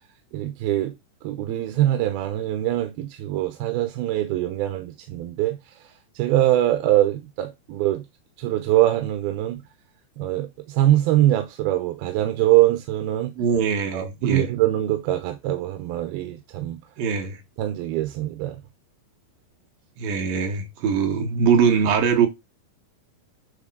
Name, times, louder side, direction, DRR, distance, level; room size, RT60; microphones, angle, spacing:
voice 1, 0.3-0.9 1.2-5.7 6.1-8.0 8.4-9.6 10.2-13.3 13.9-16.8 17.6-18.6, right 14 dB, 90° right, 2.8 m, -23 dB
voice 2, 13.4-14.5 17.0-17.4 20.0-22.3, right 6 dB, 70° right, 3.0 m, -22 dB
9.8 x 3.7 x 3.8 m
omnidirectional pair, 4.4 m